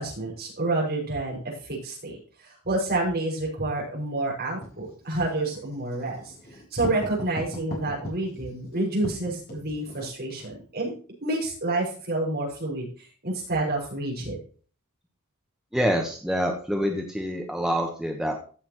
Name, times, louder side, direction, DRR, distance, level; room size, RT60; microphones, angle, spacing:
voice 1, 0.0-6.3 6.7-10.9 11.2-12.9 13.2-14.4, right 2 dB, 45° right, -3 dB, 6.0 m, -29 dB
Writing, 4.6-10.6, left 1 dB, 45° left, 4.5 m, -39 dB
voice 2, 15.7-18.3, equal, ahead, 2 dB, 1.2 m, -26 dB
15.0 x 7.0 x 3.1 m, 0.41 s
head